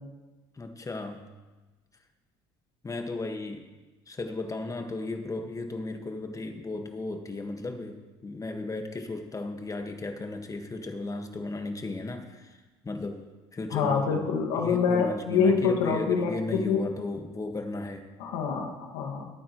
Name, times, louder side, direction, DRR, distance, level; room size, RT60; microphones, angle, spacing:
voice 1, 0.6-1.3 2.8-3.7 4.1-12.6 12.8-13.2 13.5-14.3 14.5-18.1, left 2 dB, 25° left, 5 dB, 1.7 m, -35 dB
voice 2, 13.7-16.8 18.2-19.3, left 5 dB, 75° left, 1 dB, 2.0 m, -26 dB
23.0 x 9.2 x 3.1 m, 1.2 s
hypercardioid pair, 70°, 13 cm